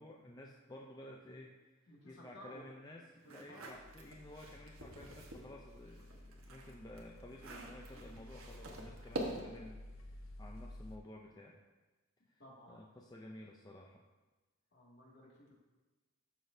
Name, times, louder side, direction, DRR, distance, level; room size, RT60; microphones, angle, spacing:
voice 1, 0.0-9.8 10.0-11.6 12.3-12.4 12.7-14.0, left 1 dB, 20° left, -1 dB, 0.5 m, -53 dB
voice 2, 1.9-2.7 3.3-3.6 12.4-12.8 14.7-15.5, equal, 55° left, -4 dB, 2.3 m, -56 dB
sound 1, 3.2-5.5 5.9-9.7, right 1 dB, 85° right, 1.2 m, -46 dB
sound 2, 3.7-11.0, left 1 dB, 75° left, 0.7 m, -53 dB
12.5 x 6.0 x 2.7 m, 1.2 s
head